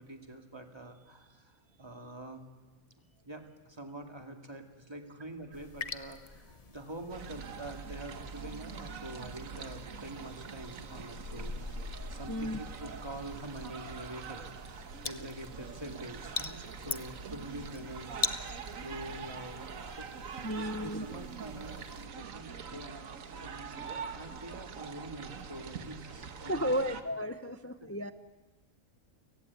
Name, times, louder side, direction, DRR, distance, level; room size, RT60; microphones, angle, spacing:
voice 1, 0.0-2.4 3.2-11.8 12.1-20.1 20.5-26.7 27.8-27.9, right 1 dB, 20° right, 4 dB, 2.2 m, -46 dB
sound 1, 5.5-22.1, left 4 dB, 30° left, 0.9 m, -44 dB
sound 2, 7.1-27.0, right 6 dB, 85° right, 1.6 m, -44 dB
voice 2, 12.3-12.6 20.4-21.0 26.5-28.1, equal, 15° left, 11 dB, 0.6 m, -33 dB
30.0 x 17.0 x 9.4 m, 1.2 s
omnidirectional pair, 1.4 m